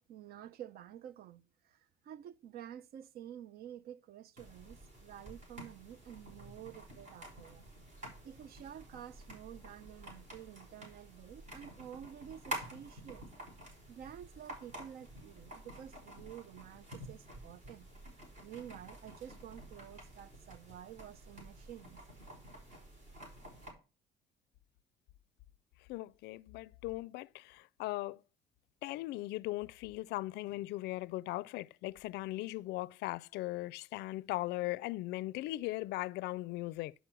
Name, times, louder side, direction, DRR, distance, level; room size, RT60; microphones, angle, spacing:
voice 1, 0.0-1.4 1.7-1.8 2.1-7.6 8.2-13.3 13.9-17.9 18.4-22.0, right 10 dB, 65° right, 0.6 m, -50 dB
sound 1, 4.4-23.7, right 1 dB, 45° right, 5.1 m, -50 dB
voice 2, 25.9-28.2 28.8-36.9, left 18 dB, 85° left, 0.4 m, -39 dB
11.5 x 5.1 x 6.1 m
cardioid pair, 110°, 17 cm